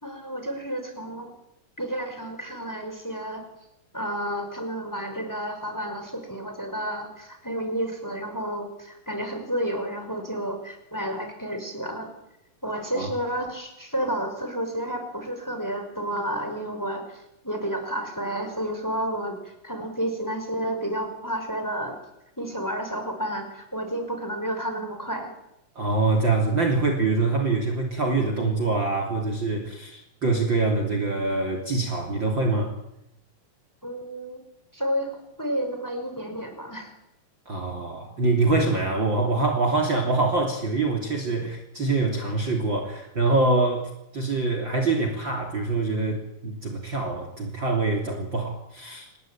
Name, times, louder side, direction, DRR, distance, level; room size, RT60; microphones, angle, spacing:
voice 1, 0.0-1.3 1.8-3.4 3.9-12.1 12.6-21.9 22.4-25.3 33.8-34.4 34.7-35.1 35.4-36.9 41.4-41.5, right 1 dB, 5° left, 6 dB, 5.0 m, -31 dB
voice 2, 25.8-32.7 37.5-49.1, right 3 dB, 35° right, 4 dB, 3.5 m, -25 dB
27.5 x 20.5 x 8.9 m, 0.85 s
omnidirectional pair, 3.9 m